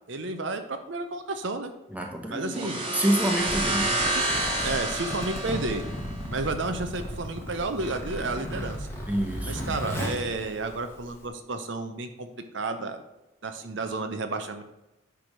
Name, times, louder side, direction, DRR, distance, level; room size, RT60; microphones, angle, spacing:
voice 1, 0.1-1.7 2.3-2.9 3.6-4.2 4.6-5.8 6.3-8.9 9.5-12.3 12.5-13.0 13.4-14.6, right 3 dB, 65° right, 7 dB, 0.7 m, -32 dB
voice 2, 1.9-3.9 9.1-9.7, right 1 dB, 5° right, 1 dB, 1.1 m, -28 dB
sound 1, 2.5-6.2, right 1 dB, 25° right, 1.4 m, -29 dB
Zipper (clothing), 3.3-11.3, equal, 10° left, 1.6 m, -35 dB
10.5 x 3.5 x 6.2 m, 0.96 s
head